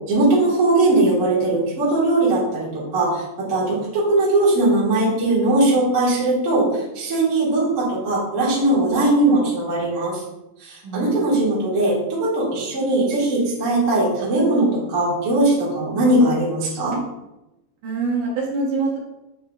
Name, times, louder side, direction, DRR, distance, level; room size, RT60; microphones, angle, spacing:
voice 1, 0.1-3.2 3.5-10.2 10.6-17.0, right 2 dB, 40° right, -6 dB, 1.1 m, -19 dB
voice 2, 10.8-11.2 17.8-19.0, right 3 dB, 65° right, -4 dB, 2.2 m, -24 dB
6.8 x 6.0 x 2.4 m, 0.94 s
omnidirectional pair, 4.4 m